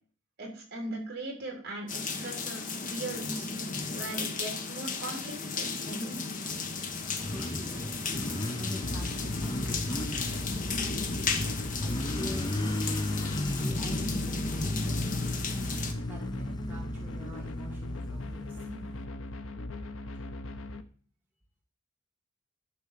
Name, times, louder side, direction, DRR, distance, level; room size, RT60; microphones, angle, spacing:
voice 1, 0.4-3.5 3.9-6.2, right 2 dB, 50° right, 0 dB, 3.5 m, -39 dB
sound 1, 1.9-15.9, left 4 dB, 40° left, 1.2 m, -35 dB
voice 2, 4.1-4.6 4.9-5.0 5.6-19.2 20.1-20.3, left 1 dB, 10° right, -3 dB, 1.8 m, -47 dB
Motorcycle, 6.3-19.0, left 1 dB, 20° left, 0.7 m, -36 dB
sound 2, 8.8-20.8, left 1 dB, 85° left, 0.9 m, -39 dB
12.0 x 4.3 x 6.7 m, 0.44 s
head